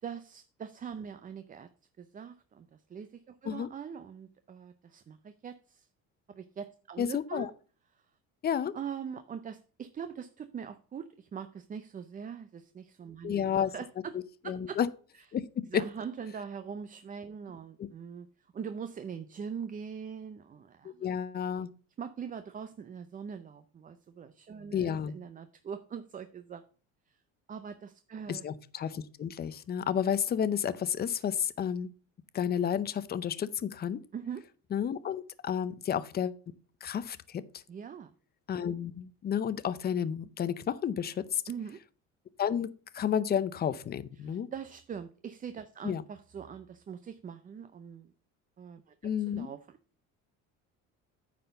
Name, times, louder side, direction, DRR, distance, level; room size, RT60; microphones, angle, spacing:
voice 1, 0.0-1.7 2.0-5.9 6.3-7.6 8.7-14.2 14.4-14.8 15.1-15.2 15.7-18.3 18.5-21.1 22.0-26.6 27.5-28.4 34.1-34.4 37.7-38.1 41.5-41.8 44.2-48.1 48.6-48.9 49.3-49.6, right 7 dB, 30° right, 10 dB, 0.5 m, -42 dB
voice 2, 7.0-7.5 8.4-8.7 13.2-13.7 14.5-14.9 15.3-15.5 15.7-15.8 17.8-17.9 20.8-21.7 24.7-25.1 28.3-31.9 32.3-34.0 34.7-36.3 36.8-37.6 38.5-41.4 42.4-44.5 45.8-46.0 49.0-49.5, left 8 dB, 35° left, 16 dB, 0.6 m, -31 dB
9.5 x 4.2 x 6.6 m, 0.39 s
cardioid pair, 130°, 30 cm